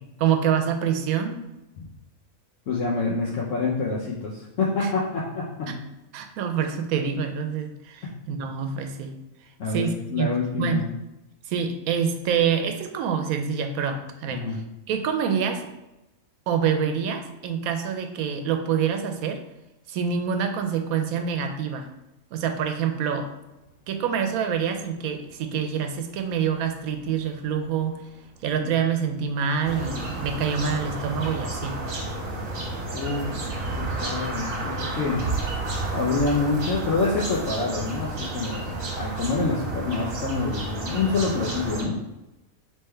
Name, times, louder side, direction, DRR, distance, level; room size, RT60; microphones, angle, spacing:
voice 1, 0.2-1.4 4.8-4.9 5.7-5.8 6.1-9.1 9.7-10.3 10.6-10.9 11.5-14.4 14.9-15.7 16.5-19.4 19.9-21.9 22.3-23.3 23.9-28.0 28.4-31.8, right 7 dB, 90° right, 6 dB, 1.1 m, -26 dB
voice 2, 2.7-5.8 8.0-8.1 9.6-10.9 14.3-14.6 28.5-28.7 32.9-33.4 33.8-35.2 35.8-41.9, left 4 dB, 65° left, -5 dB, 1.0 m, -27 dB
sound 1, 23.4-38.6, right 1 dB, 85° left, 1.8 m, -48 dB
sound 2, 29.6-41.8, right 2 dB, 70° right, 1.4 m, -31 dB
3.5 x 3.2 x 4.4 m, 0.96 s
omnidirectional pair, 1.5 m